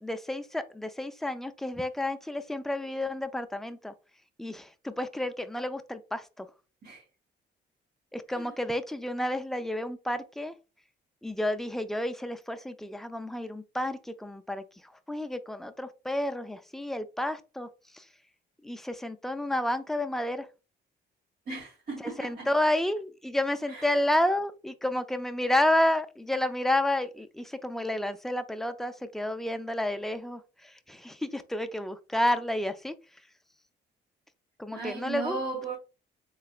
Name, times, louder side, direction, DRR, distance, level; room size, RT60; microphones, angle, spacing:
voice 1, 0.0-3.9 4.4-6.5 8.1-10.5 11.2-17.7 17.9-18.0 18.6-20.5 22.0-32.9 34.6-35.4, left 1 dB, ahead, 0.4 m, -30 dB
voice 2, 21.5-22.5 23.7-24.0 34.7-35.8, right 3 dB, 50° right, 2.0 m, -37 dB
3.8 x 3.2 x 2.4 m
cardioid pair, 90°, 20 cm